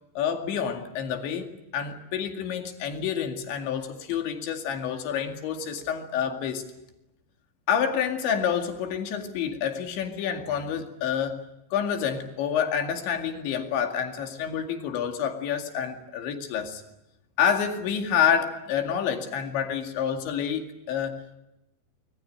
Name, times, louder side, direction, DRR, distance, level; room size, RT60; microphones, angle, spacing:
voice 1, 0.2-6.6 7.7-11.4 11.7-16.8 17.4-21.4, left 8 dB, 80° left, 4 dB, 4.5 m, -28 dB
25.0 x 22.5 x 8.8 m, 0.91 s
omnidirectional pair, 5.2 m